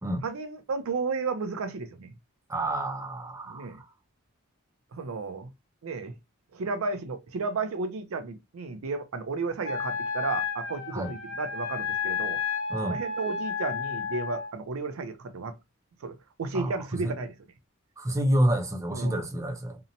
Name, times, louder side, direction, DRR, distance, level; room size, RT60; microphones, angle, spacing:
voice 1, 0.2-2.1 3.5-3.8 4.9-5.5 5.8-6.1 6.5-12.4 12.8-15.6 16.0-17.3 18.9-19.2, right 4 dB, 85° right, 0.5 m, -33 dB
voice 2, 2.5-3.7 10.9-11.1 12.7-13.0 16.5-16.7 17.0-17.1 18.0-19.8, right 1 dB, 15° right, 0.4 m, -28 dB
Wind instrument woodwind instrument, 9.6-14.5, left 5 dB, 70° left, 0.7 m, -32 dB
2.8 x 2.0 x 2.6 m
head